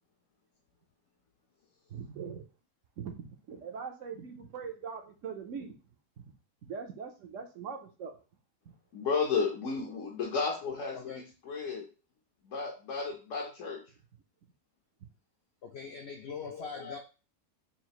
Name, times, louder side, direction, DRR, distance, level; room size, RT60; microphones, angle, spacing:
voice 1, 1.9-2.4 3.0-5.7 6.2-6.3 6.6-8.1, right 6 dB, 65° right, 3 dB, 0.9 m, -41 dB
voice 2, 8.9-11.9 12.5-13.8 16.4-17.0, left 5 dB, 60° left, -1 dB, 1.0 m, -33 dB
voice 3, 10.9-11.2 15.6-17.0, left 6 dB, 80° left, 5 dB, 0.5 m, -42 dB
5.7 x 2.4 x 2.9 m, 0.33 s
omnidirectional pair, 1.6 m